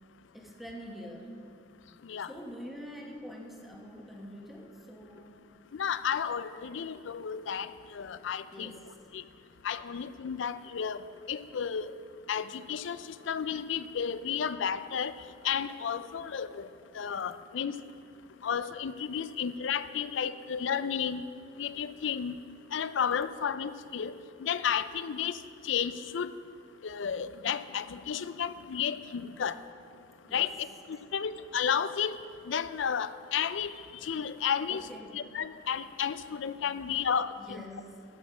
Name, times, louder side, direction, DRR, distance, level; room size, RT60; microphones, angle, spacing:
voice 1, 0.3-1.4 2.3-5.4 8.5-9.0 30.3-30.5 34.7-35.2 36.6-37.0 37.4-38.0, equal, ahead, 0 dB, 1.1 m, -45 dB
voice 2, 5.7-8.7 9.1-9.2 9.6-11.0 11.3-11.9 12.3-15.1 15.4-16.7 16.9-17.7 18.4-21.2 21.6-22.4 22.7-24.1 24.4-25.4 25.6-26.3 26.8-29.6 30.3-32.1 32.5-33.7 34.0-34.9 35.1-37.6, left 7 dB, 65° left, 14 dB, 0.4 m, -32 dB
14.0 x 6.2 x 6.1 m, 2.4 s
head